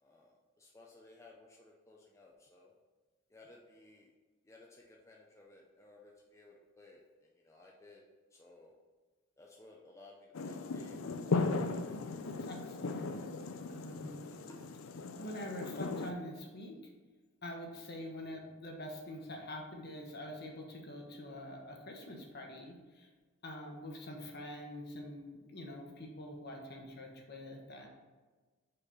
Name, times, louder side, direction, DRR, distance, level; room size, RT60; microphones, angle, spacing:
voice 1, 0.0-2.7 3.3-4.1 4.5-7.0 7.4-8.0 8.4-8.8 9.4-11.0 14.5-14.6, left 2 dB, 15° left, -2 dB, 0.6 m, -58 dB
sound 1, 10.3-16.1, left 3 dB, 80° left, 0.5 m, -37 dB
voice 2, 12.2-13.1 13.7-14.1 15.2-16.8 17.4-23.1 23.4-27.9, left 1 dB, 50° left, 1 dB, 1.2 m, -45 dB
5.4 x 4.2 x 5.6 m, 1.3 s
head